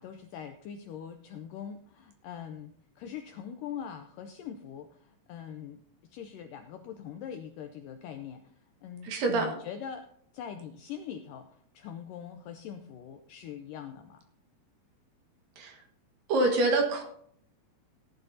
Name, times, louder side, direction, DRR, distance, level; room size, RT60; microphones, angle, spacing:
voice 1, 0.0-5.8 6.1-8.5 8.8-10.1 10.3-11.5 11.7-14.2, left 8 dB, 90° left, 6 dB, 1.9 m, -42 dB
voice 2, 9.0-9.5 15.6-15.8 16.3-17.0, right 2 dB, 65° right, 3 dB, 3.2 m, -26 dB
17.5 x 10.5 x 2.8 m, 0.66 s
omnidirectional pair, 4.5 m